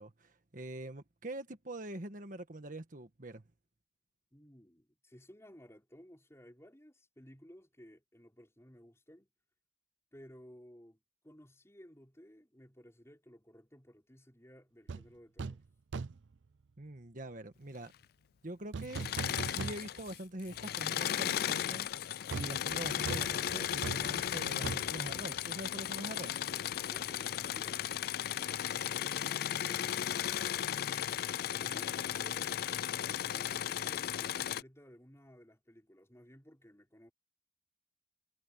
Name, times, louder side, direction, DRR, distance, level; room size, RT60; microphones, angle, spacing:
voice 1, 0.0-3.4 16.8-17.9 18.4-19.1 19.4-26.3, right 1 dB, 45° right, 1.4 m, -44 dB
voice 2, 4.3-9.3 10.1-15.6 26.9-27.9 31.5-32.6 33.1-37.1, equal, 15° left, 5.7 m, -57 dB
sound 1, 14.9-15.1 15.4-15.7 15.9-16.3 18.7-20.2 20.5-20.6 22.3-26.0 26.2-26.4, right 4 dB, 85° right, 0.5 m, -41 dB
Engine / Mechanisms, 18.8-20.2 20.5-34.6, left 10 dB, 55° left, 0.4 m, -35 dB
head